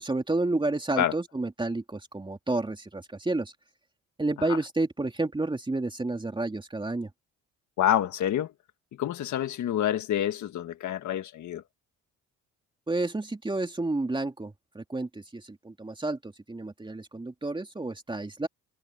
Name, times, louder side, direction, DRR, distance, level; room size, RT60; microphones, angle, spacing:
voice 1, 0.0-3.5 4.2-7.1 12.9-18.5, right 2 dB, 15° right, 3.0 m, -30 dB
voice 2, 7.8-8.5 8.9-11.6, left 11 dB, 70° left, 1.7 m, -27 dB
cardioid pair, 90°, 30 cm